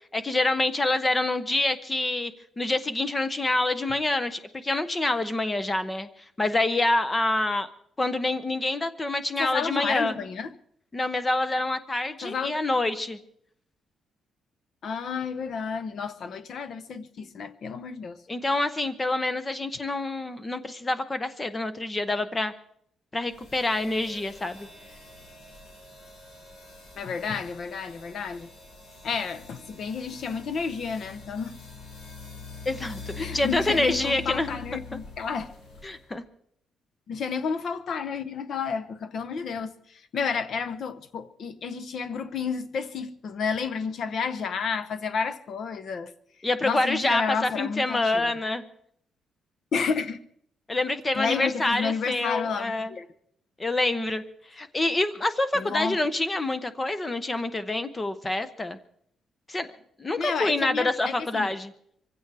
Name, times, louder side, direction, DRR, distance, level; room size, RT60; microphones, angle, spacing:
voice 1, 0.1-6.1 6.4-7.7 8.0-10.1 10.9-13.2 18.3-22.5 23.1-24.7 32.7-34.6 34.9-35.0 35.8-36.2 46.4-48.6 50.7-52.9 53.6-54.2 54.5-58.8 59.5-59.7 60.0-61.7, left 2 dB, 15° left, 0.8 m, -27 dB
voice 2, 9.4-10.5 12.2-12.5 14.8-18.2 26.9-28.5 29.0-31.5 33.2-35.5 37.1-46.1 46.6-48.3 49.7-50.2 51.1-53.1 55.5-56.0 60.2-61.5, left 5 dB, 45° left, 0.8 m, -31 dB
sound 1, 23.3-36.1, left 4 dB, 85° left, 5.7 m, -44 dB
24.0 x 15.5 x 3.4 m
cardioid pair, 180°, 0 cm